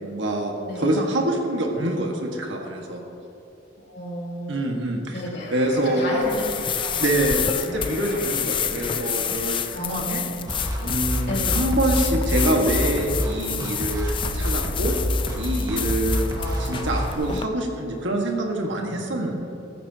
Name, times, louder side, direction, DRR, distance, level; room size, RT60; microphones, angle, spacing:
voice 1, 0.0-3.0 4.5-5.2 5.5-6.0 7.0-10.2 10.8-15.0 15.4-16.3 16.6-19.4, right 1 dB, 70° right, 1 dB, 1.8 m, -25 dB
voice 2, 0.6-1.0 3.8-4.7 5.1-5.5 5.8-6.4 6.7-7.0 9.7-10.5 11.3-11.7 16.4-16.8 17.2-17.3, equal, 60° left, -4 dB, 3.1 m, -32 dB
sound 1, 5.4-10.4, left 2 dB, 45° left, 2.0 m, -41 dB
sound 2, 6.2-17.4, left 8 dB, 25° left, 0.4 m, -29 dB
sound 3, 10.5-17.1, equal, 20° right, 1.8 m, -27 dB
14.5 x 14.0 x 3.0 m, 2.9 s
head